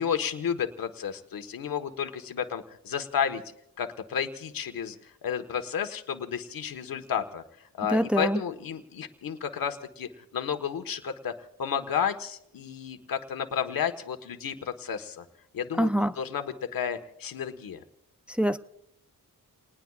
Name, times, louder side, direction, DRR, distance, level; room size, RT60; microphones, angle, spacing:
voice 1, 0.0-3.4 3.8-5.0 5.2-7.4 7.8-11.3 11.6-15.2 15.5-15.9 16.2-17.8, left 8 dB, 90° left, 7 dB, 1.4 m, -32 dB
voice 2, 7.9-8.4 15.8-16.1 18.3-18.6, equal, 5° right, 9 dB, 0.6 m, -24 dB
30.0 x 20.0 x 2.4 m, 0.76 s
cardioid pair, 80°, 34 cm